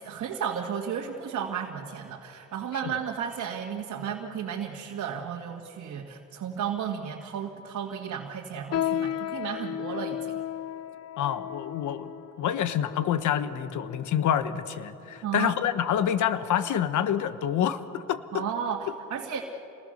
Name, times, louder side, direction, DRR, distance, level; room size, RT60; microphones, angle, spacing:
voice 1, 0.0-10.4 15.2-15.5 18.3-19.4, right 8 dB, 70° right, 0 dB, 1.9 m, -33 dB
sound 1, 8.7-14.4 15.1-15.2 15.9-16.2 16.6-16.8 17.5-17.6, left 11 dB, 55° left, 0.5 m, -34 dB
voice 2, 11.2-12.1 12.4-18.5, left 9 dB, 75° left, 12 dB, 1.2 m, -27 dB
28.5 x 20.0 x 6.5 m, 2.7 s
cardioid pair, 90°, 30 cm